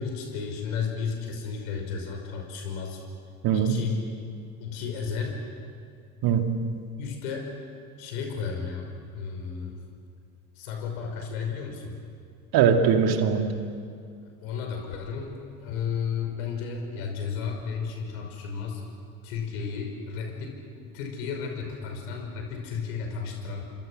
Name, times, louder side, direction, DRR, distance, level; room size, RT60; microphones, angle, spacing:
voice 1, 0.0-3.0 3.5-4.0 4.6-5.5 7.0-7.6 8.0-8.9 9.1-9.8 10.6-12.0 14.2-18.8 19.2-23.6, left 6 dB, 70° left, 2 dB, 5.8 m, -33 dB
voice 2, 3.4-3.8 6.2-6.8 12.5-13.7, right 7 dB, 50° right, 5 dB, 2.5 m, -22 dB
28.0 x 26.5 x 6.5 m, 2.3 s
figure-of-eight pair, 65°, 45 cm